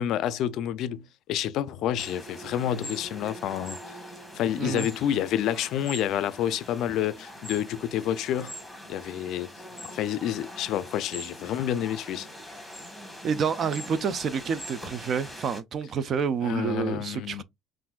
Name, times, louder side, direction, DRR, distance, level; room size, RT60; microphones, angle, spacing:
voice 1, 0.0-3.8 4.3-8.6 8.9-9.5 9.8-12.3 16.4-17.4, left 10 dB, 60° left, 0.4 m, -29 dB
sound 1, 2.0-15.6, equal, ahead, 1.4 m, -42 dB
voice 2, 4.6-4.9 13.2-17.4, right 6 dB, 40° right, 0.4 m, -28 dB
5.7 x 2.5 x 2.3 m
cardioid pair, 145°, 0 cm